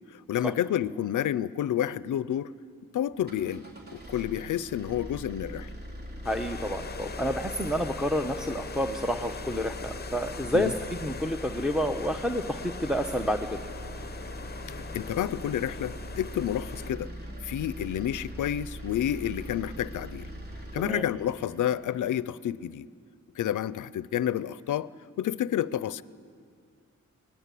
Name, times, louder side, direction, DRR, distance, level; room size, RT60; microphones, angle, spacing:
voice 1, 0.1-2.5 2.9-3.6 3.9-5.7 10.5-10.7 14.7-17.1 17.4-20.3 20.7-22.9 23.4-24.9 25.2-26.0, left 11 dB, 85° left, 18 dB, 0.6 m, -30 dB
sound 1, 3.1-21.0, right 1 dB, 35° right, 3.6 m, -42 dB
sound 2, 6.2-16.9, left 6 dB, 35° left, 0.7 m, -42 dB
voice 2, 6.2-13.5 20.8-21.1, equal, 5° right, 4 dB, 0.9 m, -29 dB
sound 3, 13.4-22.1, equal, 80° right, 4.3 m, -51 dB
24.5 x 19.0 x 8.4 m, 2.2 s
cardioid pair, 95°, 30 cm